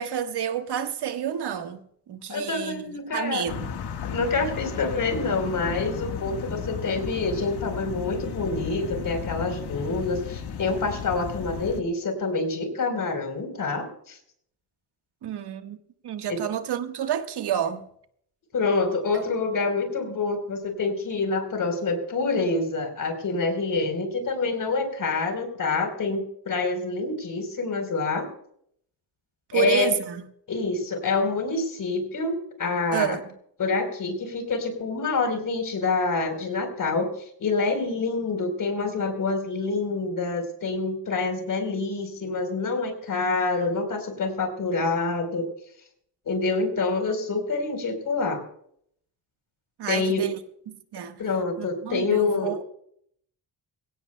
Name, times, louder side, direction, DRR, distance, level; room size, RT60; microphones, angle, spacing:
voice 1, 0.0-1.8 2.1-3.7 15.2-15.8 16.0-17.8 29.5-30.2 32.9-33.2 49.8-50.3 50.7-51.2 51.6-52.6, right 9 dB, 75° right, 1.5 m, -29 dB
voice 2, 2.3-3.4 4.0-14.2 16.3-16.4 18.5-28.3 29.5-29.9 30.5-33.2 33.6-37.1 37.4-45.5 46.3-48.4 49.9-50.3 51.2-52.5, left 3 dB, 50° left, 4.1 m, -27 dB
sound 1, 3.5-11.8, left 7 dB, 70° left, 1.6 m, -34 dB
24.0 x 17.0 x 2.2 m
wide cardioid pair, 160°, 40 cm